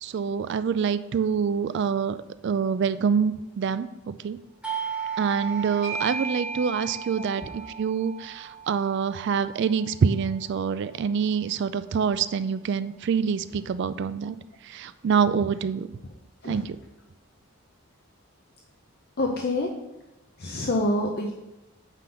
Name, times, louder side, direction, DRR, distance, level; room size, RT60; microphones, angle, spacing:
voice 1, 0.0-2.2 2.4-4.4 5.2-14.4 14.6-16.0 16.4-16.7, right 6 dB, 55° right, 13 dB, 0.3 m, -26 dB
Doorbell, 4.6-9.9, right 6 dB, 5° right, 1.3 m, -34 dB
voice 2, 7.2-7.6 16.4-16.6 19.2-19.7 20.4-21.3, left 1 dB, 45° left, 2 dB, 0.7 m, -27 dB
9.1 x 3.9 x 5.6 m, 1.0 s
head